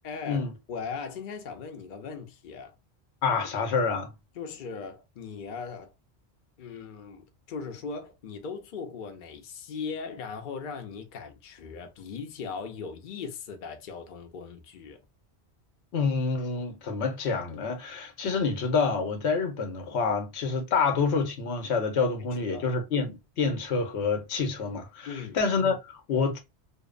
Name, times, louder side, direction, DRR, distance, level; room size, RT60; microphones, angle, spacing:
voice 1, 0.0-2.7 4.4-5.9 6.6-15.0 22.2-22.7 25.1-25.4, left 5 dB, 55° left, 0.7 m, -39 dB
voice 2, 3.2-4.1 15.9-26.4, left 4 dB, 90° left, 1.0 m, -27 dB
2.7 x 2.0 x 2.3 m
omnidirectional pair, 1.1 m